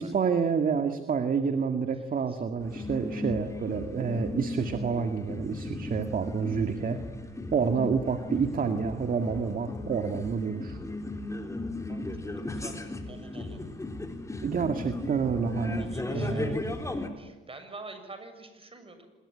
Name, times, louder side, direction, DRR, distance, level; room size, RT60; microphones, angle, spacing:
voice 1, 0.0-7.0 7.5-10.8 14.4-16.6, right 6 dB, 45° right, 7 dB, 2.0 m, -28 dB
sound 1, 2.6-17.1, left 2 dB, 15° left, 4.0 m, -36 dB
voice 2, 11.9-12.8 13.1-13.6 14.7-14.9 15.8-16.7 17.2-19.1, right 3 dB, 30° right, 8 dB, 6.8 m, -47 dB
26.5 x 21.5 x 9.9 m, 1.1 s
cardioid pair, 90°, 20 cm